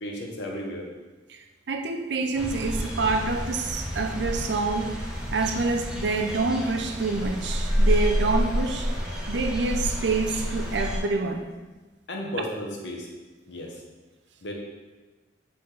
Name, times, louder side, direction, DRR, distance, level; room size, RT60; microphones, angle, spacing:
voice 1, 0.0-0.9 12.1-13.1 13.5-13.7 14.4-14.5, left 1 dB, 75° left, 0 dB, 1.1 m, -33 dB
voice 2, 1.7-5.0 5.3-8.9 9.3-11.4, right 3 dB, 70° right, 4 dB, 0.6 m, -27 dB
sound 1, 2.3-11.0, equal, 5° right, 1.1 m, -29 dB
7.9 x 4.0 x 3.3 m, 1.2 s
head